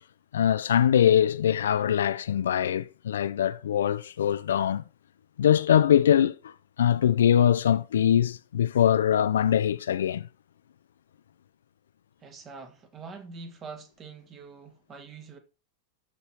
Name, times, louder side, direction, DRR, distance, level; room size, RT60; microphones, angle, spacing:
voice 1, 0.3-4.8 5.4-6.5 6.8-10.2, left 9 dB, 65° left, 0.5 m, -22 dB
voice 2, 12.2-15.4, right 4 dB, 30° right, 1.6 m, -44 dB
12.5 x 4.2 x 4.4 m
figure-of-eight pair, 90°, 0 cm